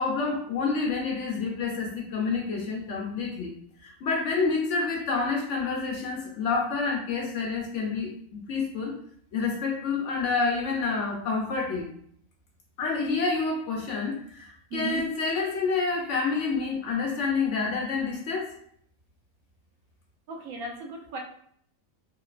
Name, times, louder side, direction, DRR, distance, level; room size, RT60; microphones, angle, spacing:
voice 1, 0.0-3.5 3.8-8.9 9.3-11.9 12.8-18.5, left 4 dB, 65° left, -1 dB, 0.9 m, -28 dB
voice 2, 14.7-15.0 20.3-21.2, right 4 dB, 80° right, 1 dB, 1.0 m, -35 dB
2.9 x 2.1 x 2.3 m, 0.64 s
omnidirectional pair, 1.5 m